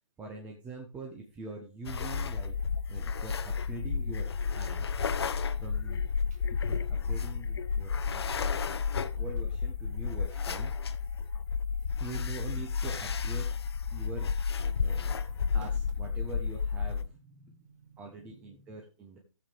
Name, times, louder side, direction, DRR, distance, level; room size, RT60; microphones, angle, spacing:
voice 1, 0.2-2.6 2.9-4.9 5.6-6.0 6.5-8.8 9.1-10.7 12.0-13.5 13.9-14.3 14.8-15.1 15.5-17.1 18.0-19.2, right 3 dB, 10° right, 0 dB, 0.9 m, -44 dB
sound 1, 1.9-17.0, left 5 dB, 55° left, 0.8 m, -32 dB
sound 2, 9.1-9.5 12.4-13.5 14.9-16.0, right 2 dB, 65° right, 2.8 m, -53 dB
voice 2, 14.6-15.6 16.9-18.8, right 4 dB, 30° right, 5 dB, 2.3 m, -58 dB
14.0 x 7.4 x 3.4 m, 0.34 s
figure-of-eight pair, 150°, 16 cm